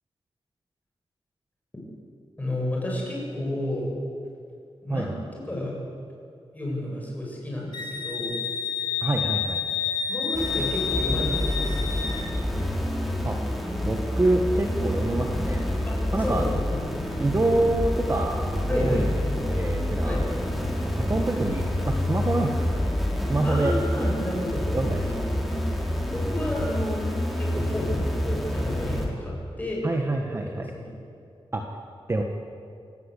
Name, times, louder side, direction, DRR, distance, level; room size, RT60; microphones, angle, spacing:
voice 1, 2.4-3.9 4.8-5.1 5.4-5.8 6.5-8.4 10.1-12.0 15.9-16.9 18.7-19.0 20.0-20.3 23.4-24.6 26.1-27.0 27.4-30.1 30.5-30.9, left 1 dB, 15° left, -3 dB, 7.7 m, -31 dB
voice 2, 4.9-5.2 9.0-9.8 13.2-13.4 13.8-15.7 16.1-16.5 17.2-19.1 19.5-20.4 21.0-22.9 23.3-23.7 24.7-25.4 29.8-30.7 31.5-31.6 32.1-32.2, right 2 dB, 25° right, 2 dB, 1.4 m, -26 dB
Wind instrument woodwind instrument, 7.7-12.3, left 7 dB, 50° left, 2.6 m, -29 dB
sound 1, 10.3-29.1, left 1 dB, ahead, 3.9 m, -28 dB
27.0 x 18.5 x 8.4 m, 2.5 s
wide cardioid pair, 170°, 10 cm